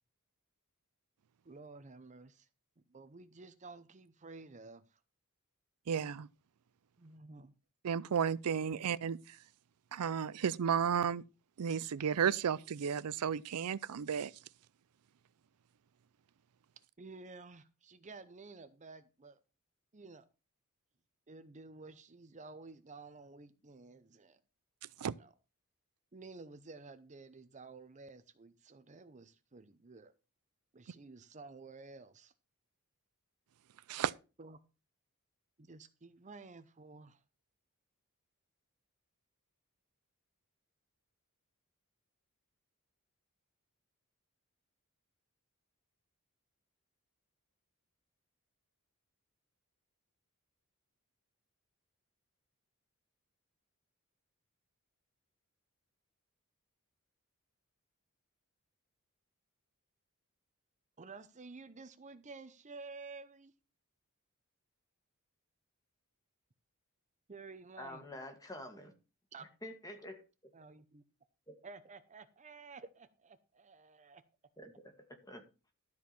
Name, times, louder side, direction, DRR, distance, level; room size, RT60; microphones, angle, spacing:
voice 1, 1.4-2.5 2.9-5.0 7.0-7.5 17.0-19.4 19.9-20.3 21.3-24.4 25.0-25.3 26.1-30.1 30.7-32.3 34.4-34.6 35.6-37.2 61.0-63.5 67.3-68.2 69.3-69.4 70.5-71.0 71.6-74.2, right 3 dB, 35° right, 0.7 m, -52 dB
voice 2, 5.9-6.3 7.8-9.4 9.9-11.2 11.6-14.3 25.0-25.1 33.9-34.1, right 7 dB, 85° right, 0.5 m, -33 dB
voice 3, 67.8-68.9 69.6-70.2 71.5-71.6 74.6-75.4, left 1 dB, 15° left, 1.9 m, -48 dB
12.5 x 4.7 x 6.9 m
head